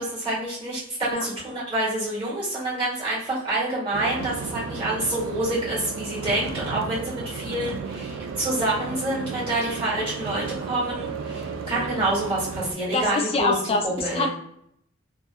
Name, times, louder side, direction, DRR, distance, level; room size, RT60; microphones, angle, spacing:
voice 1, 0.0-13.5 13.8-14.3, right 1 dB, 25° right, -8 dB, 1.5 m, -27 dB
sound 1, 3.9-12.7, right 5 dB, 70° right, 0.3 m, -34 dB
voice 2, 12.9-14.3, left 3 dB, 30° left, 4 dB, 0.4 m, -25 dB
2.8 x 2.3 x 2.3 m, 0.70 s
head